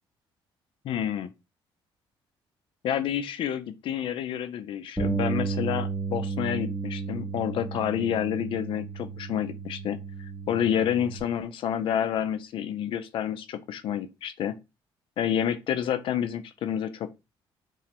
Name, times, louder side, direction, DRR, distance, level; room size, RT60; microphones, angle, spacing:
voice 1, 0.8-1.3 2.8-14.6 15.2-17.1, left 9 dB, 65° left, 0.4 m, -29 dB
Bass guitar, 5.0-11.2, right 4 dB, ahead, 0.6 m, -33 dB
3.1 x 2.0 x 2.9 m
cardioid pair, 115°, 9 cm